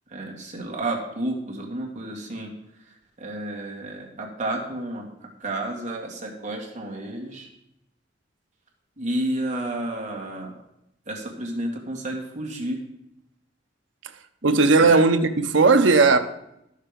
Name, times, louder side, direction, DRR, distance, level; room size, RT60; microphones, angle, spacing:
voice 1, 0.1-2.5 2.9-7.5 9.0-10.6 11.1-12.8 14.4-15.0, right 1 dB, 40° right, 2.1 m, -31 dB
voice 2, 14.4-16.2, right 3 dB, 75° right, 0.8 m, -17 dB
12.5 x 6.7 x 5.2 m
head